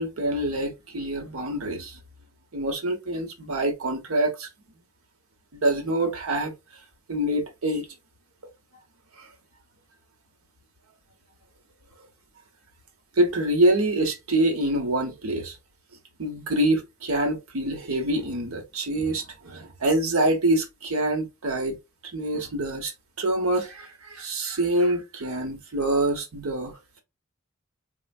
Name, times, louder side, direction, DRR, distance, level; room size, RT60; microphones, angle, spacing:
voice 1, 0.0-2.0 2.5-4.5 5.5-6.5 7.1-7.9 9.2-9.3 13.2-15.6 16.2-21.8 22.0-22.9 23.2-26.8, right 1 dB, 80° right, 1.0 m, -25 dB
4.3 x 2.3 x 2.3 m
head